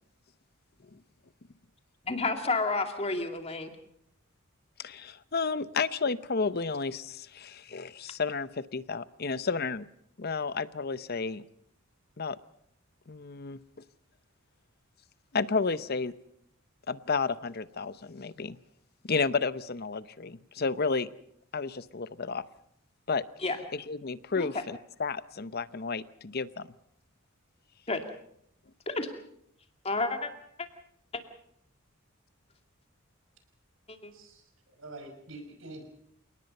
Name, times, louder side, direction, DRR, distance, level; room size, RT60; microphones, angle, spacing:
voice 1, 2.0-3.7 23.4-23.6 24.4-24.5 27.9-28.0 28.9-29.1 29.8-30.3 30.6-30.7 33.9-34.1, left 3 dB, 30° left, 6 dB, 2.5 m, -30 dB
voice 2, 4.8-9.9 10.2-11.4 12.2-12.4 13.1-13.6 15.3-16.1 16.9-18.6 19.0-21.1 21.5-22.4 23.1-23.2 23.7-26.7, left 4 dB, 45° left, 15 dB, 0.8 m, -32 dB
voice 3, 34.1-35.8, right 2 dB, 70° right, 5 dB, 5.7 m, -46 dB
29.5 x 18.5 x 5.5 m, 0.69 s
head